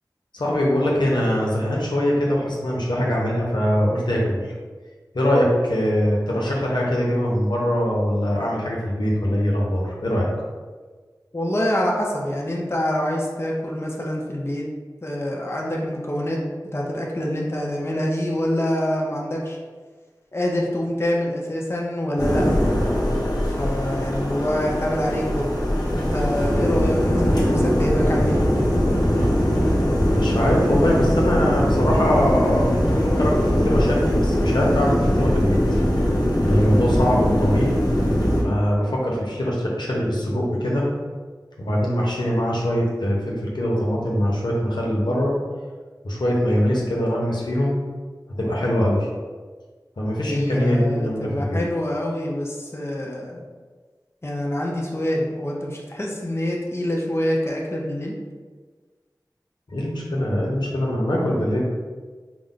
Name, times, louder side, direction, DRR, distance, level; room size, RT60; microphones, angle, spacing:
voice 1, 0.3-4.5 5.1-10.3 30.0-35.6 36.4-37.8 38.4-40.8 41.6-45.3 46.0-47.8 48.4-49.1 50.0-51.6 59.7-61.6, equal, 85° left, -4 dB, 0.8 m, -22 dB
voice 2, 11.3-14.6 15.0-16.4 16.7-19.6 20.3-22.5 23.6-25.5 25.9-28.4 50.3-53.4 54.2-58.1, left 1 dB, 35° left, -2 dB, 0.7 m, -25 dB
sound 1, 22.2-38.4, equal, 60° left, 1.1 m, -21 dB
4.8 x 2.1 x 3.8 m, 1.4 s
wide cardioid pair, 40°, 7 cm